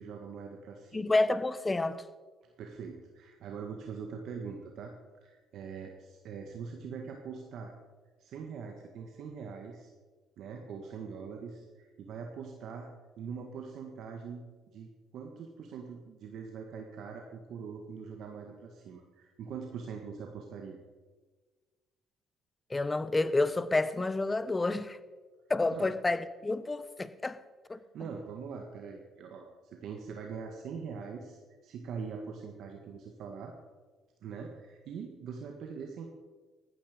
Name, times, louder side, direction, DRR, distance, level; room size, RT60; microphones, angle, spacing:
voice 1, 0.0-1.1 2.6-4.9 5.2-7.7 8.2-9.9 10.4-12.9 13.2-20.8 25.7-25.9 27.9-33.5 34.2-36.1, right 6 dB, 70° right, 1.7 m, -43 dB
voice 2, 0.9-2.0 22.7-25.0 25.5-27.4 27.7-27.8, left 2 dB, 20° left, 0.9 m, -29 dB
15.5 x 12.5 x 5.2 m
supercardioid pair, 75°, 0 cm